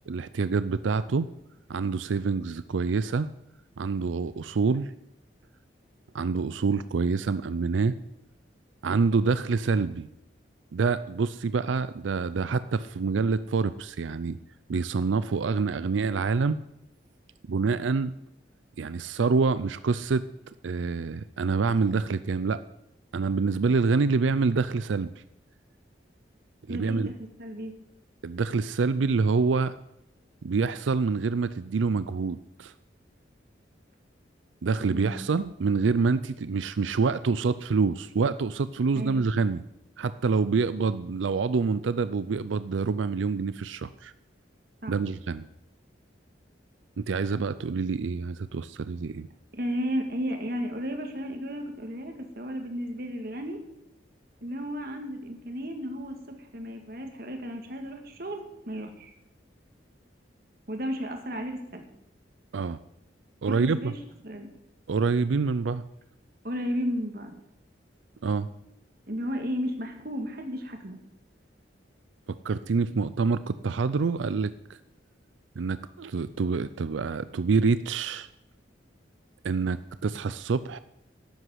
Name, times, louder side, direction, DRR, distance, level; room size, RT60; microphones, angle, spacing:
voice 1, 0.1-1.3 1.7-3.3 3.8-4.9 6.1-8.0 8.8-10.1 10.7-14.4 14.7-16.6 17.5-18.1 18.8-20.2 20.6-22.6 23.1-25.1 26.7-27.1 28.2-29.8 30.4-32.7 34.6-39.6 40.0-44.1 44.9-45.5 47.0-49.3 62.5-62.8 63.4-63.9 64.9-65.8 68.2-68.5 72.3-74.5 75.6-78.3 79.4-80.8, right 4 dB, 90° right, 14 dB, 0.5 m, -26 dB
voice 2, 26.7-27.1 27.4-27.7 34.8-35.2 39.0-39.3 44.8-44.9 49.5-53.6 54.4-59.1 60.7-61.8 63.5-64.0 64.2-64.5 66.4-67.3 69.1-71.0, equal, 55° right, 4 dB, 2.1 m, -33 dB
12.0 x 8.0 x 9.4 m, 0.83 s
head